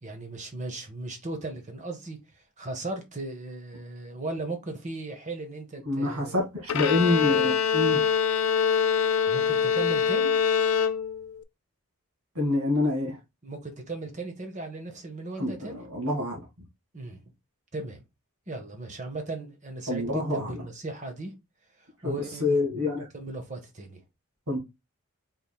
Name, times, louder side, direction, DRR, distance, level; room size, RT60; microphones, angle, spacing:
voice 1, 0.0-6.4 9.3-10.4 13.4-15.8 16.9-17.2 17.7-18.0 18.5-21.3 21.8-22.6 22.9-24.0, right 2 dB, 35° right, 1.2 m, -37 dB
voice 2, 5.9-8.0 12.4-13.2 15.4-16.5 19.9-20.5 22.0-22.1 22.4-23.1 24.5-24.6, left 2 dB, 85° right, 1.9 m, -26 dB
Bowed string instrument, 6.7-11.4, left 7 dB, 80° left, 0.5 m, -24 dB
5.2 x 4.0 x 2.2 m
head